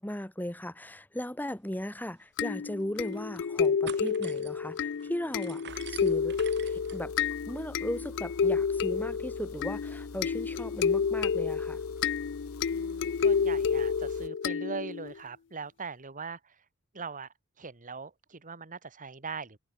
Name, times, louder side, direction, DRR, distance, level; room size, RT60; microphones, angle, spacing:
voice 1, 0.0-5.6 5.9-7.1 7.5-11.8, left 1 dB, 10° left, 1.6 m, -37 dB
sound 1, 2.2-2.3 2.8-3.3 3.6-12.2, right 7 dB, 55° right, 4.8 m, -50 dB
sound 2, 2.4-15.1, left 6 dB, 55° left, 0.5 m, -30 dB
sound 3, 5.7-14.3, left 2 dB, 80° left, 1.8 m, -47 dB
voice 2, 12.7-16.4 16.9-17.3 17.6-19.6, right 4 dB, 40° right, 1.9 m, -41 dB
head